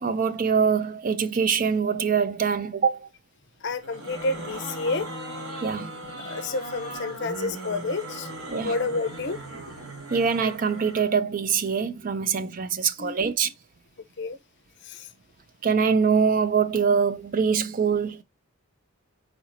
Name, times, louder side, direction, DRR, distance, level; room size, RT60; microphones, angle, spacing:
voice 1, 0.0-3.1 5.6-5.9 8.5-8.8 10.1-13.5 15.6-18.2, right 6 dB, 40° right, 0.4 m, -24 dB
voice 2, 3.6-5.1 6.2-8.3 8.6-9.4 13.0-13.2 14.2-14.4 14.9-15.1, left 3 dB, 55° left, 0.6 m, -29 dB
sound 1, 3.8-11.1, right 1 dB, 80° right, 3.0 m, -38 dB
4.3 x 4.0 x 2.6 m
head